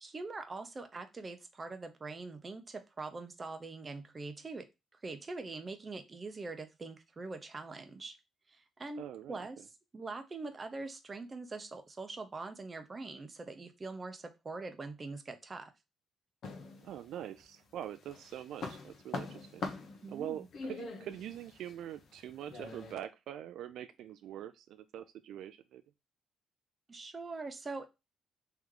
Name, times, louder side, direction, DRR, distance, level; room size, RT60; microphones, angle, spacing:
voice 1, 0.0-4.7 5.0-8.2 8.5-9.6 9.9-15.7 20.0-20.5 26.9-27.9, right 3 dB, 25° right, 7 dB, 0.7 m, -43 dB
voice 2, 9.0-9.4 16.8-19.7 20.1-25.8, right 11 dB, 75° right, 10 dB, 0.3 m, -44 dB
sound 1, 16.4-17.4 17.8-23.0, left 3 dB, 60° left, 0.9 m, -43 dB
3.3 x 3.0 x 3.7 m, 0.25 s
cardioid pair, 115°, 0 cm